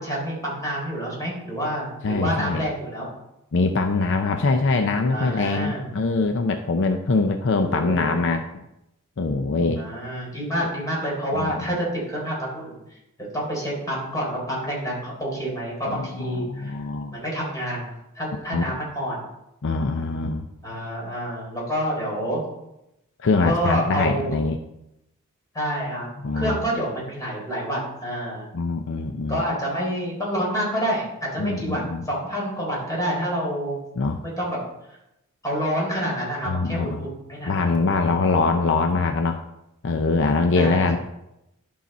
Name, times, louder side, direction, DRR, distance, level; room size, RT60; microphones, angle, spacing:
voice 1, 0.0-3.1 5.1-5.8 7.5-8.2 9.8-13.0 13.3-16.8 17.1-17.9 18.2-19.2 20.6-22.4 23.4-24.3 25.5-26.1 26.3-28.5 29.3-33.8 34.4-34.6 35.4-38.2 40.6-41.0, equal, 15° left, -4 dB, 3.9 m, -28 dB
voice 2, 2.0-2.7 3.5-8.4 9.2-9.8 11.3-11.5 15.9-17.2 18.5-18.6 19.6-20.4 23.2-24.6 26.2-26.6 28.5-29.4 31.4-32.0 34.0-34.2 36.5-37.1 37.5-39.4 39.8-41.0, left 3 dB, 60° left, 6 dB, 0.6 m, -23 dB
11.5 x 5.7 x 4.1 m, 0.87 s
head